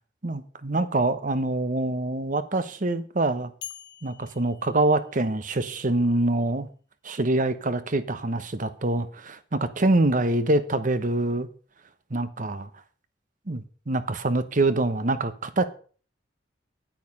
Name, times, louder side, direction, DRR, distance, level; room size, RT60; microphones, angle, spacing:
voice 1, 0.2-3.5 4.0-6.7 7.0-11.5 12.1-12.7 13.5-15.7, right 2 dB, 45° right, 1.0 m, -25 dB
sound 1, 3.6-5.7, left 10 dB, 60° left, 1.6 m, -45 dB
9.8 x 9.2 x 5.4 m
head